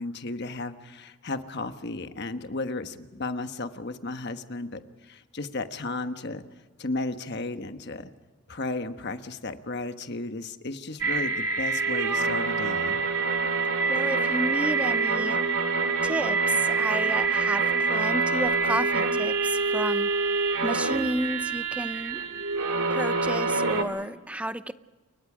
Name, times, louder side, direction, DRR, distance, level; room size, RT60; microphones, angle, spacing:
voice 1, 0.0-6.4 6.8-8.1 8.5-13.0, left 2 dB, 50° left, 8 dB, 1.3 m, -34 dB
sound 1, 11.0-23.8, right 4 dB, 70° right, 2.3 m, -26 dB
voice 2, 13.9-15.4 16.0-22.2 22.9-24.7, right 1 dB, 5° right, 12 dB, 0.6 m, -32 dB
29.0 x 22.5 x 5.0 m, 1.3 s
head